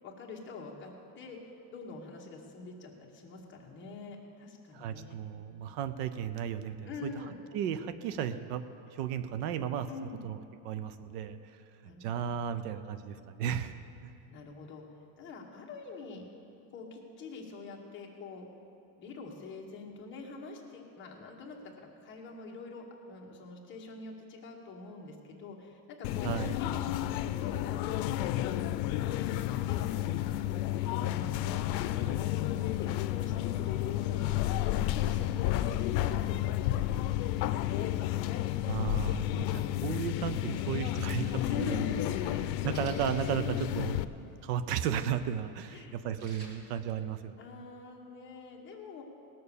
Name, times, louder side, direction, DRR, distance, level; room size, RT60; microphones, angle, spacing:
voice 1, 0.0-5.2 6.8-7.4 9.9-10.3 11.8-12.4 14.3-14.8 15.2-16.2 16.7-18.5 19.0-26.3 26.6-30.4 30.9-31.6 32.0-34.2 34.9-36.4 36.7-37.9 41.4-42.4 45.7-46.0 47.4-49.0, left 4 dB, 25° left, -1 dB, 1.3 m, -44 dB
voice 2, 4.7-7.3 7.5-9.9 10.2-10.4 10.6-11.6 12.0-13.8 14.0-14.1 26.2-26.6 38.6-41.9 42.4-44.1 44.4-47.4, right 9 dB, 65° right, 12 dB, 0.7 m, -35 dB
sound 1, 26.0-44.1, left 13 dB, 85° left, 0.7 m, -31 dB
Splash splatter, 42.0-47.0, right 1 dB, 35° right, 1.8 m, -53 dB
18.5 x 6.7 x 7.0 m, 2.6 s
cardioid pair, 175°, 50 cm